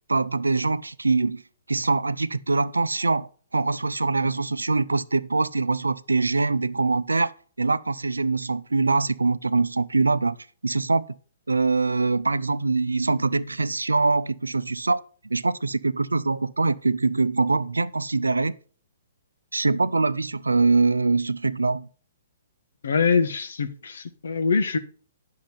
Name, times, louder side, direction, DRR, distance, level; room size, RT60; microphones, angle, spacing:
voice 1, 0.1-1.4 1.7-10.4 10.6-11.1 11.5-15.0 15.3-18.5 19.5-21.9, right 3 dB, 85° right, 0.5 m, -23 dB
voice 2, 22.8-24.8, left 5 dB, 70° left, 1.3 m, -23 dB
10.0 x 6.5 x 5.6 m
figure-of-eight pair, 125°, 0 cm